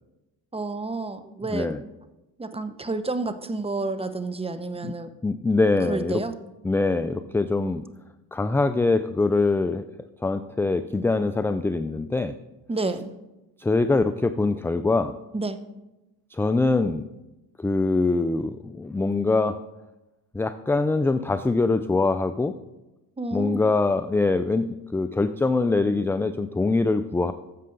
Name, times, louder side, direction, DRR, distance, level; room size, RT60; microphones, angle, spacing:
voice 1, 0.5-1.7 2.4-5.1 5.9-6.3 12.7-13.1 15.3-15.6 23.2-23.6, right 3 dB, 15° right, 10 dB, 0.9 m, -30 dB
voice 2, 1.5-1.8 4.8-4.9 5.2-6.2 6.6-7.8 8.3-9.8 10.2-12.3 13.6-15.1 16.3-17.0 17.6-19.6 20.3-22.5 23.3-27.3, left 3 dB, 5° left, 10 dB, 0.3 m, -23 dB
13.5 x 7.4 x 3.9 m, 1.0 s
supercardioid pair, 80°, 41 cm